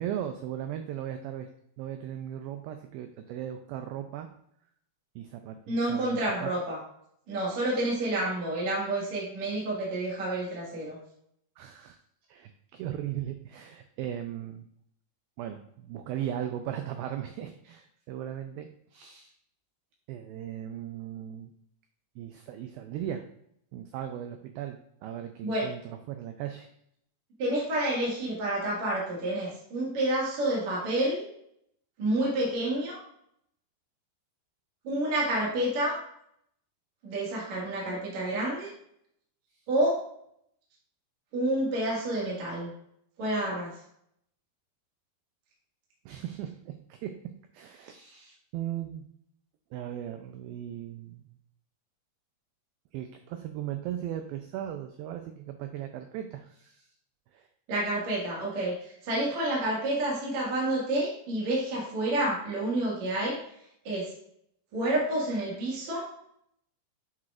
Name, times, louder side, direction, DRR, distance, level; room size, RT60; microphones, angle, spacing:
voice 1, 0.0-1.5 1.8-4.3 5.2-6.5 11.6-12.0 12.3-14.7 15.4-19.3 20.1-21.5 22.2-23.3 23.7-26.7 39.5-39.7 46.1-47.1 47.5-49.1 49.7-51.4 52.9-56.9 57.3-57.5, right 11 dB, 85° right, 6 dB, 2.1 m, -37 dB
voice 2, 5.7-6.8 7.3-11.0 25.4-25.7 27.4-31.2 32.0-33.0 34.8-36.0 37.0-38.7 39.7-40.0 41.3-42.7 43.2-43.7 57.7-63.4 63.8-64.1 64.7-66.1, right 1 dB, 50° right, -5 dB, 2.8 m, -29 dB
9.5 x 4.9 x 2.5 m, 0.72 s
omnidirectional pair, 4.8 m